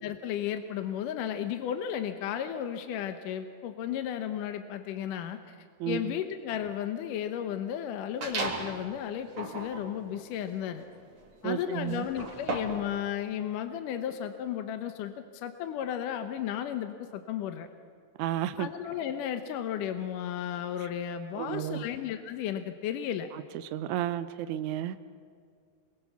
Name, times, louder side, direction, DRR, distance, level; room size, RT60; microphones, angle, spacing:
voice 1, 0.0-5.6 5.9-10.9 11.4-17.7 18.6-23.3, left 10 dB, 75° left, 8 dB, 2.4 m, -34 dB
voice 2, 5.8-6.2 11.4-12.1 18.2-18.7 21.4-21.8 23.7-25.0, right 11 dB, 75° right, 10 dB, 1.9 m, -32 dB
sound 1, 8.2-8.8 9.3-12.9, right 2 dB, 45° right, 4.1 m, -36 dB
28.0 x 23.0 x 7.1 m, 2.2 s
omnidirectional pair, 4.1 m